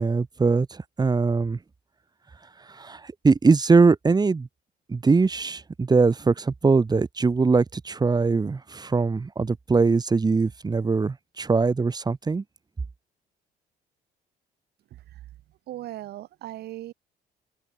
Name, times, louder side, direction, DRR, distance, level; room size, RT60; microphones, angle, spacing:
voice 1, 0.0-1.6 2.7-4.5 4.9-12.4, right 4 dB, 25° right, 6.0 m, -22 dB
voice 2, 15.7-16.9, right 14 dB, 70° right, 7.3 m, -38 dB
cardioid pair, 110°, 17 cm